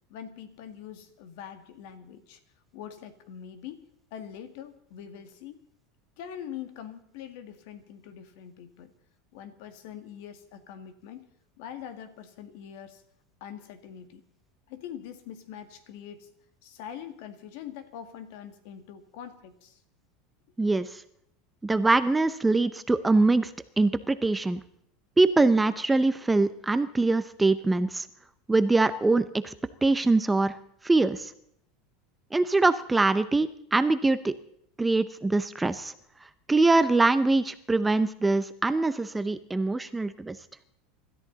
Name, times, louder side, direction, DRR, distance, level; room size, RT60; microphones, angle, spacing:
voice 1, 0.1-2.4 2.7-5.6 6.2-8.9 9.3-11.3 11.6-13.0 13.4-14.2 14.7-16.3 16.6-19.8, left 9 dB, 65° left, 9 dB, 1.9 m, -43 dB
voice 2, 20.6-21.0 21.6-23.5 23.8-24.6 25.2-28.1 28.5-29.5 29.8-30.6 30.8-31.3 32.3-34.4 34.8-35.9 36.5-40.4, right 3 dB, 10° right, 12 dB, 0.6 m, -23 dB
25.5 x 13.5 x 4.0 m, 0.69 s
supercardioid pair, 155°, 0 cm